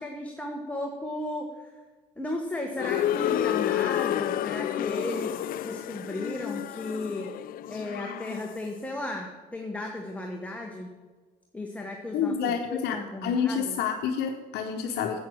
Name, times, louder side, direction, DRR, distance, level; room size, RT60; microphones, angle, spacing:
voice 1, 0.0-1.7 2.2-5.3 5.6-7.4 7.7-10.9 11.5-13.8, left 1 dB, 10° left, 1 dB, 1.2 m, -35 dB
sound 1, 2.8-8.7, left 12 dB, 60° left, 0.4 m, -30 dB
voice 2, 12.1-15.2, left 7 dB, 75° left, 4 dB, 0.9 m, -28 dB
9.4 x 8.6 x 6.2 m, 1.4 s
cardioid pair, 110°, 17 cm